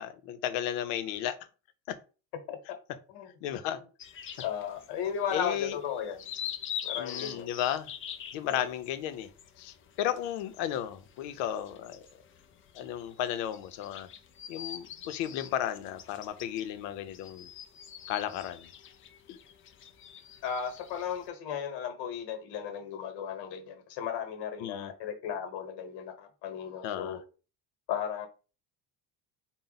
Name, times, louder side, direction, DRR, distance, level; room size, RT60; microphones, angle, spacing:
voice 1, 0.0-1.4 1.9-2.0 3.4-3.8 5.3-5.7 7.0-7.9 8.3-9.3 9.6-12.0 12.7-14.1 14.5-17.5 18.1-18.7 19.3-19.4 24.6-24.9 26.8-27.2, left 11 dB, 85° left, 0.7 m, -34 dB
sound 1, 4.0-21.3, left 9 dB, 30° left, 0.4 m, -45 dB
voice 2, 4.4-6.3 6.8-7.5 8.4-8.6 20.4-27.2 27.9-28.3, left 8 dB, 70° left, 1.1 m, -35 dB
3.9 x 2.1 x 3.9 m
cardioid pair, 140°, 43 cm